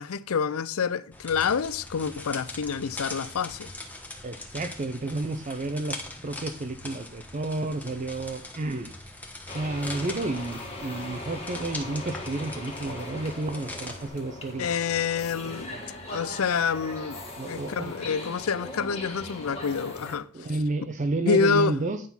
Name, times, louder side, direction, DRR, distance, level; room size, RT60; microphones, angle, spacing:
voice 1, 0.0-3.7 14.6-15.7 16.1-20.3 21.2-21.7, left 5 dB, 85° left, 0.5 m, -27 dB
sound 1, 1.1-14.1, left 2 dB, 10° left, 1.1 m, -41 dB
voice 2, 4.2-6.0 6.2-8.9 9.5-14.7 15.7-15.8 17.4-17.9 20.3-22.0, right 2 dB, 35° right, 0.6 m, -31 dB
sound 2, 9.5-20.2, left 1 dB, 30° left, 1.8 m, -39 dB
9.3 x 3.8 x 5.7 m
head